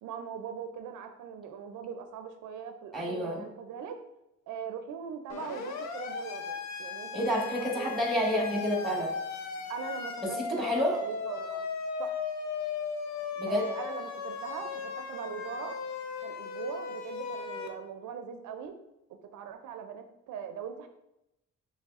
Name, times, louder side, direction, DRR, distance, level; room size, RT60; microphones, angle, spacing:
voice 1, 0.0-4.0 4.5-8.1 9.7-11.7 12.0-12.2 13.5-15.8 16.2-18.8 19.1-20.9, right 7 dB, 75° right, 7 dB, 0.5 m, -41 dB
voice 2, 2.9-3.4 7.1-9.1 10.2-11.0 13.4-13.7, equal, ahead, -1 dB, 1.5 m, -29 dB
Siren, 5.3-17.7, left 5 dB, 65° left, 0.6 m, -37 dB
6.5 x 3.1 x 2.4 m, 0.88 s
cardioid pair, 90°, 30 cm